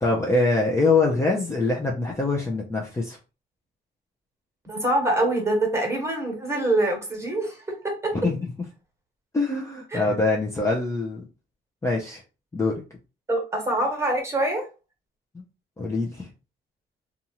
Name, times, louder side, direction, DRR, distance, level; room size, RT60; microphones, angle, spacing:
voice 1, 0.0-3.2 8.1-8.5 9.3-11.2 11.8-12.2 12.5-12.8 15.8-16.3, left 3 dB, 15° left, -2 dB, 0.6 m, -24 dB
voice 2, 4.6-8.1 9.9-10.0 13.3-14.6, right 1 dB, 15° right, 1 dB, 1.3 m, -25 dB
2.7 x 2.4 x 2.9 m, 0.32 s
cardioid pair, 90°, 20 cm